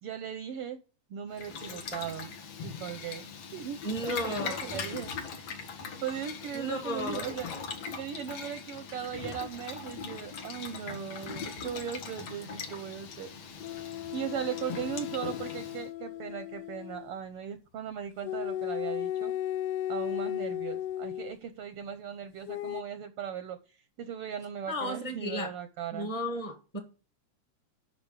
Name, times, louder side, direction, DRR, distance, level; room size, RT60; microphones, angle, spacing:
voice 1, 0.0-0.8 1.1-2.3 2.6-5.1 5.4-7.5 7.9-13.3 14.1-19.3 19.9-26.1, right 8 dB, 70° right, 1.5 m, -38 dB
Boiling, 1.3-15.9, left 5 dB, 60° left, 2.4 m, -41 dB
voice 2, 3.8-5.1 6.5-7.3 24.7-25.5 25.9-26.8, left 1 dB, 15° left, 1.4 m, -34 dB
sound 1, 13.6-17.1 18.2-21.4 22.5-22.8, left 11 dB, 80° left, 1.4 m, -35 dB
8.8 x 5.9 x 8.2 m
omnidirectional pair, 3.5 m